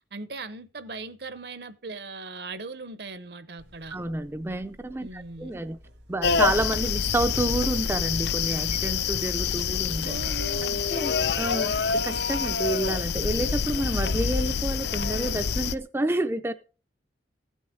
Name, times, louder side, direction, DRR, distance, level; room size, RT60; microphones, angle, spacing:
voice 1, 0.1-4.0 5.0-5.5 10.0-10.9, right 3 dB, 65° right, 0.9 m, -39 dB
Buzz, 3.6-15.8, equal, 85° right, 2.0 m, -54 dB
voice 2, 3.9-5.8 6.1-10.1 10.9-11.7 12.0-16.5, right 2 dB, 15° right, 0.4 m, -29 dB
sound 1, 6.2-15.7, left 6 dB, 65° left, 0.4 m, -27 dB
16.0 x 6.4 x 3.7 m
head